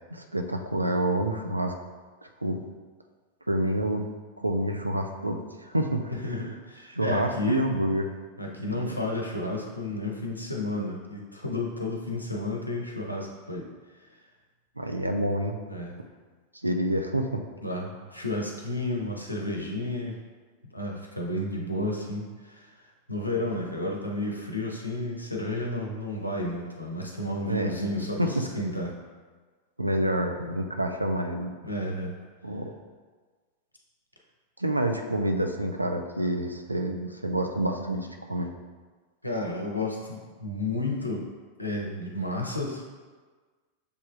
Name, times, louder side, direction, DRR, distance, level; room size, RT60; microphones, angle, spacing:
voice 1, 0.1-1.7 2.4-2.6 3.5-4.1 4.4-6.0 6.9-8.1 8.7-9.0 14.8-15.6 16.6-17.4 27.5-28.4 29.8-31.5 32.4-32.7 34.6-38.5, right 1 dB, 85° right, 4 dB, 0.4 m, -28 dB
voice 2, 6.1-7.8 8.4-13.7 15.7-16.0 17.6-20.2 20.6-29.0 31.6-32.1 39.2-41.2 41.6-42.8, left 1 dB, 90° left, -1 dB, 0.7 m, -32 dB
6.7 x 3.2 x 2.4 m, 1.4 s
figure-of-eight pair, 90°, 0 cm